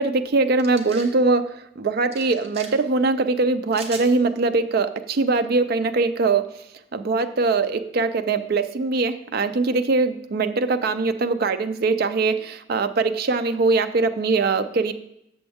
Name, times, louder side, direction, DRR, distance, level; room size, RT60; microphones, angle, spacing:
voice 1, 0.0-6.5 6.9-14.9, right 3 dB, 55° right, 9 dB, 0.5 m, -22 dB
sound 1, 0.6-1.1 2.1-2.7 3.7-4.1, right 4 dB, 35° right, 1.0 m, -38 dB
7.2 x 7.0 x 3.5 m, 0.79 s
head